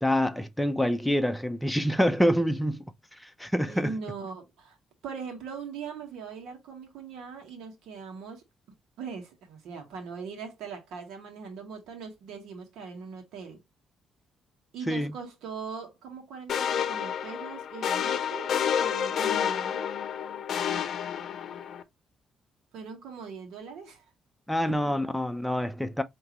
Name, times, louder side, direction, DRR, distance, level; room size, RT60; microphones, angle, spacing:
voice 1, 0.0-2.8 3.2-3.9 14.9-15.1 24.5-26.0, equal, ahead, 0.7 m, -26 dB
voice 2, 3.7-4.8 5.0-13.6 14.7-19.9 22.7-24.0, right 5 dB, 85° right, 1.5 m, -41 dB
sound 1, 16.5-21.8, left 8 dB, 65° left, 0.6 m, -29 dB
5.0 x 3.0 x 3.0 m
cardioid pair, 90°, 0 cm